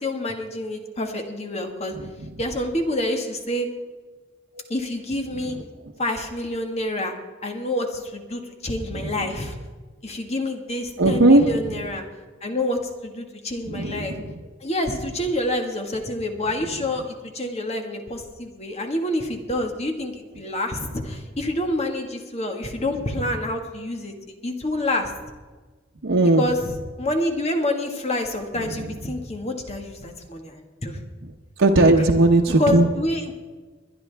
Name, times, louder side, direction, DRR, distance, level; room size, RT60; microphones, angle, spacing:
voice 1, 0.0-1.9 2.4-3.7 4.7-5.6 6.0-7.1 7.4-9.6 10.0-12.0 12.4-14.1 14.6-24.1 24.4-25.1 26.4-31.0 32.6-33.3, left 1 dB, 35° left, 4 dB, 1.7 m, -27 dB
voice 2, 11.0-11.6 13.7-14.3 26.0-26.4 31.6-32.9, right 2 dB, 85° right, 0 dB, 0.9 m, -17 dB
22.5 x 10.5 x 3.5 m, 1.3 s
head